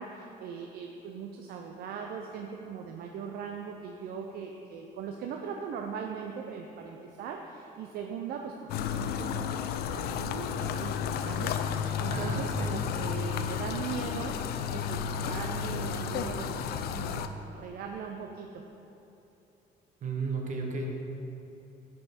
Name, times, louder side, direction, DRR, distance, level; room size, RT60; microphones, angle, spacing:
voice 1, 0.0-9.7 9.9-18.6, right 6 dB, 65° right, 3 dB, 0.5 m, -40 dB
sound 1, 8.7-17.3, left 8 dB, 70° left, 0.4 m, -32 dB
voice 2, 12.1-12.8 20.0-20.9, right 3 dB, 50° right, 1 dB, 1.1 m, -33 dB
6.3 x 6.0 x 4.2 m, 3.0 s
cardioid pair, 110°, 17 cm